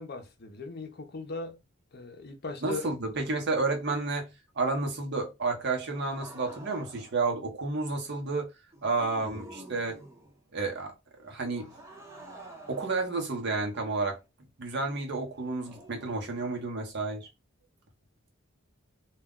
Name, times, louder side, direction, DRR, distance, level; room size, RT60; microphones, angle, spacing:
voice 1, 0.0-1.6 1.9-2.9 3.2-3.3 9.3-9.4, left 3 dB, 50° left, 0.6 m, -39 dB
voice 2, 2.6-8.5 8.8-10.0 10.5-10.9 11.2-11.7 12.7-14.2 14.6-17.3, right 3 dB, 55° right, 0.8 m, -31 dB
sound 1, 5.8-7.3 8.7-10.4 11.6-14.2 15.6-16.6, right 1 dB, 15° right, 0.7 m, -49 dB
2.4 x 2.1 x 3.6 m
head